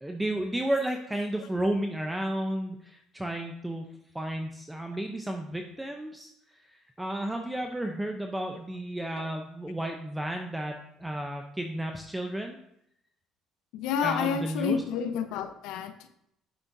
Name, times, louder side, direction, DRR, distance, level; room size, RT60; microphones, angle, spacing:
voice 1, 0.0-3.9 4.1-6.3 6.7-12.6 14.0-14.8, right 1 dB, 10° right, 3 dB, 0.6 m, -32 dB
voice 2, 13.7-16.1, left 7 dB, 80° left, 8 dB, 0.7 m, -30 dB
8.9 x 6.0 x 2.7 m, 0.75 s
cardioid pair, 125°, 0 cm